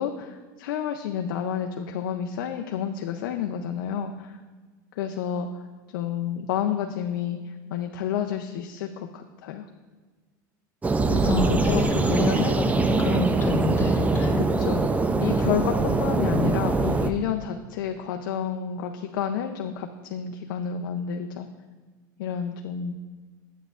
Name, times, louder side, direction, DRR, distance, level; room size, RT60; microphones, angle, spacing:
voice 1, 0.0-4.3 5.0-5.5 5.9-9.6 11.1-12.6 13.0-13.3 14.4-14.9 15.2-21.5 22.2-23.0, left 8 dB, 80° left, 4 dB, 0.5 m, -30 dB
sound 1, 10.8-17.1, right 3 dB, 15° right, 0.4 m, -23 dB
voice 2, 11.2-14.4, left 2 dB, 20° left, 3 dB, 1.1 m, -28 dB
8.9 x 8.2 x 2.4 m, 1.4 s
supercardioid pair, 115°, 11 cm